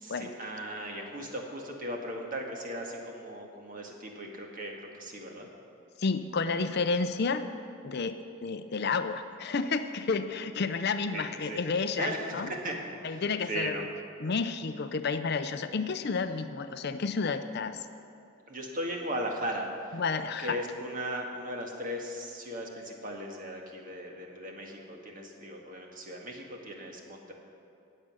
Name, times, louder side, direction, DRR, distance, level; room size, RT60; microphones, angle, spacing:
voice 1, 0.0-5.5 11.1-11.6 12.0-13.2 13.5-13.8 18.5-20.0 20.4-27.3, equal, 40° right, 1 dB, 1.7 m, -37 dB
voice 2, 6.0-7.4 7.8-8.2 8.4-12.5 13.0-13.9 14.2-17.9 19.9-20.6, left 4 dB, 50° left, 10 dB, 0.5 m, -31 dB
18.5 x 7.7 x 6.2 m, 2.6 s
head